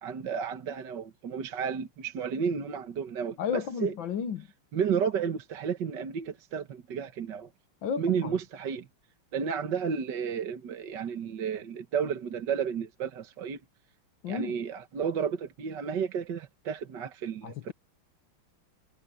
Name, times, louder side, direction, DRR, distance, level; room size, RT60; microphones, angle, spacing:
voice 1, 0.0-3.9 4.7-7.5 8.0-8.9 9.3-13.6 14.3-17.7, right 7 dB, 55° right, 1.9 m, -32 dB
voice 2, 3.4-4.5 7.8-8.4 14.2-14.6 17.4-17.7, left 7 dB, 65° left, 1.8 m, -33 dB
omnidirectional pair, 2.4 m